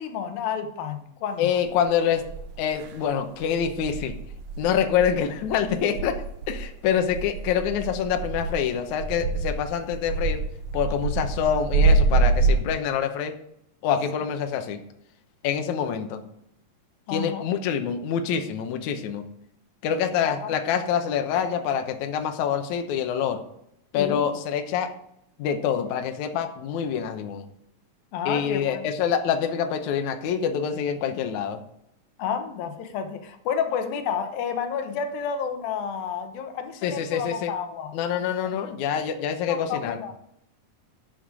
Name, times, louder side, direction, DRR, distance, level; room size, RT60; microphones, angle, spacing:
voice 1, 0.0-1.6 17.1-17.4 20.2-20.5 23.9-24.3 28.1-28.9 32.2-38.0 39.5-40.1, left 7 dB, 90° left, 7 dB, 2.8 m, -30 dB
voice 2, 1.4-2.2 2.6-4.2 4.6-6.2 6.5-10.4 10.7-13.3 13.8-14.8 15.4-16.2 17.1-19.2 19.8-23.4 23.9-24.9 25.4-27.4 28.3-31.6 36.8-37.5 37.9-40.0, left 8 dB, 65° left, 6 dB, 2.2 m, -26 dB
sound 1, 1.7-1.8 2.2-2.9 3.4-12.6, right 3 dB, 80° right, 2.9 m, -25 dB
11.0 x 7.9 x 4.9 m, 0.77 s
omnidirectional pair, 4.0 m